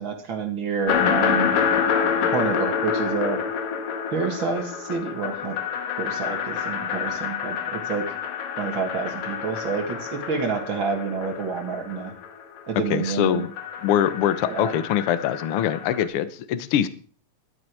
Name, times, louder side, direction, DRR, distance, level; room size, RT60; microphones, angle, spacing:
voice 1, 0.0-1.6 2.3-3.4 4.1-5.6 6.0-8.2 8.6-12.1 12.7-13.5 14.4-14.7, right 5 dB, 40° right, 4 dB, 2.5 m, -28 dB
sound 1, 0.9-12.6 12.9-16.1, left 7 dB, 90° left, 3.1 m, -27 dB
voice 2, 12.9-13.5 13.8-16.9, left 10 dB, 70° left, 12 dB, 1.4 m, -23 dB
13.5 x 12.5 x 4.7 m, 0.41 s
omnidirectional pair, 3.8 m